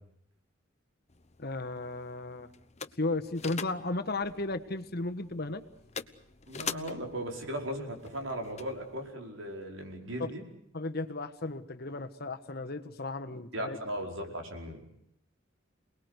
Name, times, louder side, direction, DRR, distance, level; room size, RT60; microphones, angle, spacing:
sound 1, 1.1-9.1, left 6 dB, 35° left, 1.0 m, -45 dB
voice 1, 1.4-2.5 3.0-5.6 10.2-10.3 10.7-13.8, left 2 dB, 50° left, 10 dB, 1.5 m, -34 dB
voice 2, 6.5-10.4 13.5-14.8, equal, 75° right, 2 dB, 5.1 m, -37 dB
28.5 x 20.0 x 8.2 m, 0.77 s
head